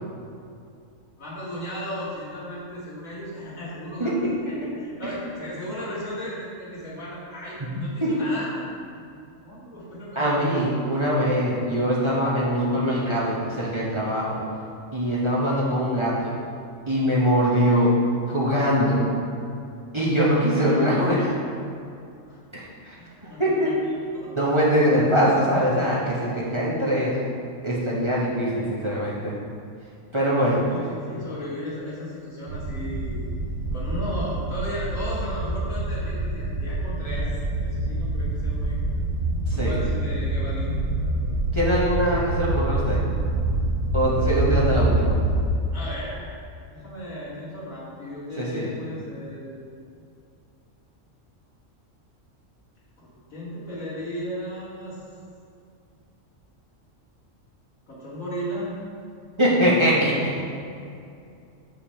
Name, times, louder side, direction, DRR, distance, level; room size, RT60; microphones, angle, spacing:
voice 1, 1.2-4.1 4.5-8.5 9.0-9.1 9.4-10.7 22.3-22.4 23.0-24.5 30.3-33.3 33.7-37.3 37.6-39.0 39.5-40.7 41.0-41.4 45.7-46.3 46.6-49.6 53.0-55.0 57.9-58.7, equal, 90° left, -8 dB, 2.5 m, -35 dB
voice 2, 10.1-14.4 14.9-16.3 16.9-17.9 18.3-19.0 19.9-21.4 22.5-23.0 23.2-23.7 24.4-27.1 27.6-29.3 30.1-30.6 39.5-39.7 41.5-43.0 43.9-45.2 48.4-48.7 59.4-60.4, equal, 25° right, -7 dB, 1.1 m, -22 dB
sound 1, 32.5-45.5, right 2 dB, 70° right, 1.0 m, -26 dB
7.0 x 5.5 x 4.4 m, 2.5 s
omnidirectional pair, 1.4 m